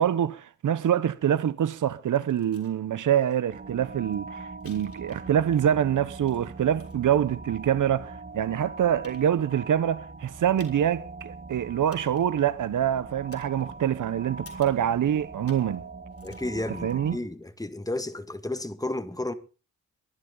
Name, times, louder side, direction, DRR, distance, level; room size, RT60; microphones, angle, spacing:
voice 1, 0.0-15.8 16.8-17.2, right 10 dB, 75° right, 0.9 m, -25 dB
sound 1, 2.1-2.8 3.3-3.4 3.7-5.6 5.9-7.2 7.9-8.0 8.6-8.7 9.0-9.7 10.6-11.0 11.2-11.3 11.9-12.4 13.3-14.0 14.5-14.9 15.5-15.8 16.1-17.5 18.4-18.5, left 4 dB, 45° left, 4.0 m, -55 dB
sound 2, 3.5-17.2, right 3 dB, 35° right, 2.6 m, -42 dB
voice 2, 16.2-19.3, left 2 dB, 10° left, 1.8 m, -32 dB
22.5 x 11.5 x 3.9 m
cardioid pair, 60°, 31 cm